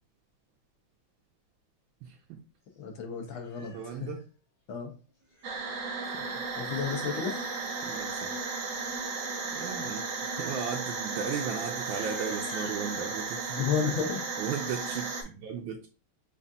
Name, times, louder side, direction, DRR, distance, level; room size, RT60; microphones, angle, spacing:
voice 1, 2.0-2.4 3.6-4.2 6.0-6.4 7.8-8.3 9.5-13.6 14.4-15.9, right 7 dB, 75° right, 1.3 m, -36 dB
Livestock farm animals working animals, 2.7-2.9 3.3-4.2 5.1-6.4 7.4-7.5 7.7-8.1 8.4-8.7 9.3-12.9, left 2 dB, 55° left, 2.9 m, -52 dB
voice 2, 2.8-3.7 4.0-4.1 4.7-4.9 6.6-7.5 13.6-14.2, left 6 dB, 75° left, 1.7 m, -32 dB
sound 1, 5.4-15.2, right 4 dB, 55° right, 1.0 m, -35 dB
6.0 x 2.5 x 2.6 m
omnidirectional pair, 2.3 m